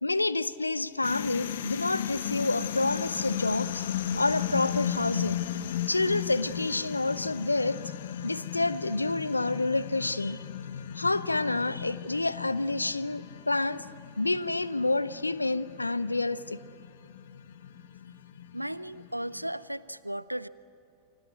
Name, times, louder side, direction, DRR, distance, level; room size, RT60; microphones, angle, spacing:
voice 1, 0.0-3.8 4.1-5.4 5.9-7.8 8.2-10.4 11.0-13.8 14.2-16.6, left 2 dB, 85° left, 17 dB, 0.7 m, -28 dB
sound 1, 1.0-19.5, left 10 dB, 60° left, 1.2 m, -36 dB
voice 2, 18.5-20.5, right 1 dB, 90° right, 19 dB, 0.6 m, -35 dB
29.0 x 25.0 x 8.3 m, 2.8 s
figure-of-eight pair, 90°, 0 cm